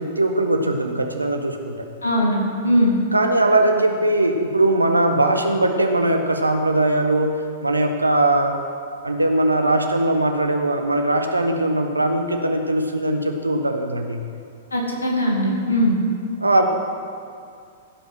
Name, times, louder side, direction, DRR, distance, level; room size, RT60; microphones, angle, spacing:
voice 1, 0.0-1.8 3.1-7.3 7.6-8.6 9.0-14.2 16.4-16.6, right 2 dB, 85° right, 4 dB, 1.0 m, -20 dB
voice 2, 2.0-2.4 2.6-2.9 14.7-16.0, equal, 80° left, -2 dB, 2.4 m, -19 dB
16.0 x 5.3 x 6.1 m, 2.3 s
figure-of-eight pair, 105°, 0 cm